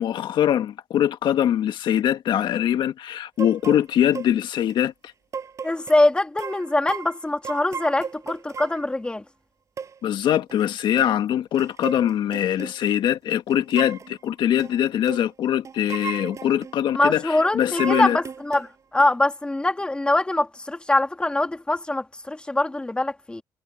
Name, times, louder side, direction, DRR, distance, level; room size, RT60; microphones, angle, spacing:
voice 1, 0.0-4.9 10.0-18.2, left 10 dB, 70° left, 1.7 m, -22 dB
sound 1, 3.4-3.8 4.1-4.3 4.7-4.8 5.3-6.0 6.4-8.8 9.8-9.9 10.5-10.6 11.0-11.2 11.5-12.7 13.5-14.2 14.6-14.7 15.1-15.3 15.6-16.7 17.8-18.7 19.0-19.1, right 6 dB, 40° right, 6.0 m, -35 dB
voice 2, 5.6-9.2 16.9-23.4, left 2 dB, 10° left, 2.0 m, -23 dB
cardioid pair, 130°, 8 cm